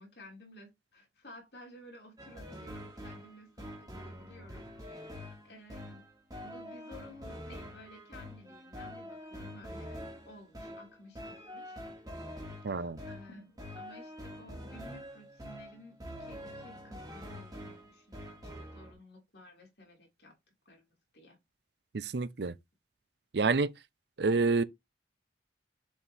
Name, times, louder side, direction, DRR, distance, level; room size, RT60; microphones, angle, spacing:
voice 1, 0.0-6.0 6.4-10.0 10.3-11.8 12.7-20.3 20.6-20.9 21.1-21.4, left 1 dB, 65° left, 3.2 m, -54 dB
sound 1, 2.2-18.9, equal, 20° right, 2.3 m, -45 dB
voice 2, 12.6-13.0 21.9-22.5 23.3-23.7 24.2-24.6, right 3 dB, 65° right, 0.6 m, -28 dB
7.1 x 4.3 x 3.4 m
head